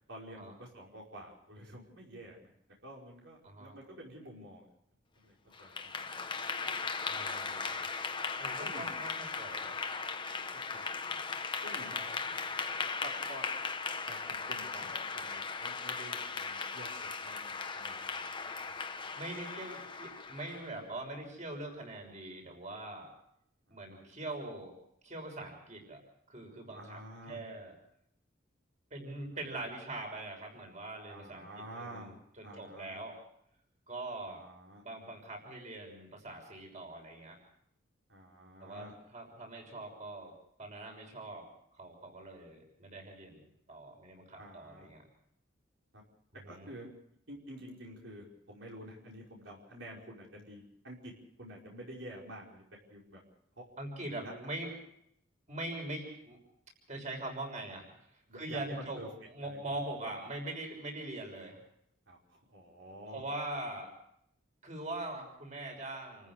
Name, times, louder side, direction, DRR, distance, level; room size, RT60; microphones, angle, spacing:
voice 1, 0.1-2.5 2.8-4.6 5.2-5.3 5.6-5.9 8.6-8.9 10.5-10.9 11.6-11.9 13.0-13.4 14.1-18.5 23.7-24.1 26.7-27.4 31.1-32.1 32.4-33.0 34.3-34.8 38.1-38.9 44.4-44.9 45.9-46.0 46.5-46.9 47.3-51.1 51.4-53.2 53.6-53.7 58.3-59.1 59.4-59.7 62.1-63.2, right 1 dB, 75° right, -2 dB, 5.3 m, -49 dB
voice 2, 3.4-3.7 7.1-7.8 8.4-9.8 11.9-12.1 19.2-23.1 23.7-24.7 25.0-26.0 26.3-27.0 27.3-27.7 28.9-31.4 31.7-33.2 33.9-34.4 34.8-37.4 38.6-40.3 40.6-41.4 41.7-45.0 46.3-46.7 53.8-54.7 55.5-56.4 56.9-59.0 59.3-61.6 63.1-63.9 64.6-66.3, right 2 dB, 40° right, 2 dB, 6.2 m, -42 dB
Clapping / Applause, 5.5-20.8, left 4 dB, 25° left, 1.3 m, -38 dB
29.0 x 14.5 x 6.5 m, 0.73 s
head